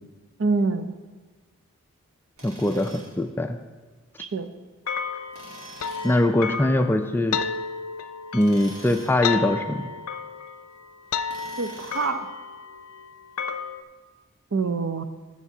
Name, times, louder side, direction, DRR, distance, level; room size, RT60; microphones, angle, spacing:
voice 1, 0.4-1.0 4.2-4.5 11.6-12.3 14.5-15.0, right 4 dB, 60° right, 10 dB, 0.5 m, -26 dB
voice 2, 2.4-3.6 6.0-7.4 8.3-9.8, left 1 dB, 10° left, 7 dB, 0.3 m, -22 dB
Tools, 2.4-3.2 5.3-6.2 8.3-9.2 11.3-12.2, right 1 dB, 85° right, 2.6 m, -45 dB
sound 1, 4.9-13.8, left 6 dB, 80° left, 0.5 m, -32 dB
16.0 x 7.3 x 2.7 m, 1.3 s
head